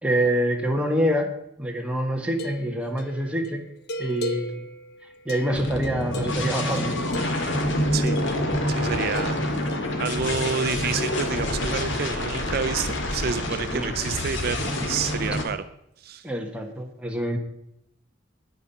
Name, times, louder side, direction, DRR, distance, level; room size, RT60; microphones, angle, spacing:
voice 1, 0.0-3.6 4.0-4.7 5.2-7.0 13.7-13.9 16.2-17.4, equal, 5° right, 2 dB, 1.3 m, -26 dB
sound 1, 2.3-8.6 9.1-10.0, equal, 55° left, 1.0 m, -37 dB
sound 2, 5.5-15.4, left 1 dB, 80° left, 2.0 m, -27 dB
voice 2, 8.7-9.4 10.0-15.6 16.0-16.3, right 6 dB, 55° right, 11 dB, 0.5 m, -29 dB
9.6 x 9.4 x 5.7 m, 0.83 s
head